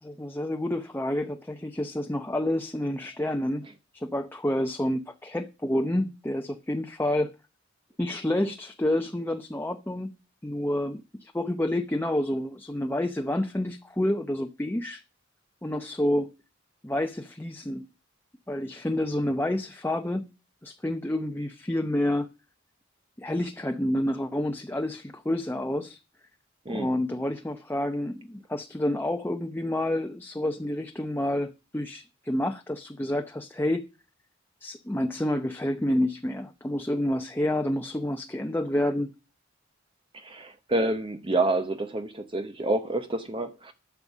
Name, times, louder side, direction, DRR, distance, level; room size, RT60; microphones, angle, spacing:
voice 1, 0.0-3.7 3.9-7.3 8.0-10.1 10.4-15.0 15.6-16.3 16.8-17.9 18.5-20.3 20.6-22.3 23.2-26.0 26.7-33.8 34.6-39.1, left 1 dB, 10° left, 0.7 m, -29 dB
voice 2, 40.1-43.7, right 2 dB, 25° right, 0.8 m, -28 dB
12.0 x 7.1 x 6.1 m
head